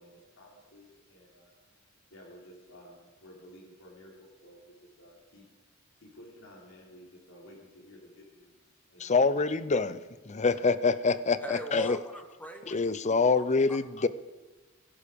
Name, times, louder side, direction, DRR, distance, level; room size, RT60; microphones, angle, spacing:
voice 1, 0.0-1.5 2.1-5.5 6.0-9.2 10.3-10.5, equal, 75° left, -4 dB, 3.8 m, -53 dB
voice 2, 9.0-10.0 10.3-12.0 12.7-14.1, left 4 dB, 35° left, 14 dB, 0.6 m, -26 dB
voice 3, 11.4-13.0 13.3-13.8, right 1 dB, 10° left, 4 dB, 1.3 m, -43 dB
22.0 x 11.5 x 5.2 m, 1.2 s
head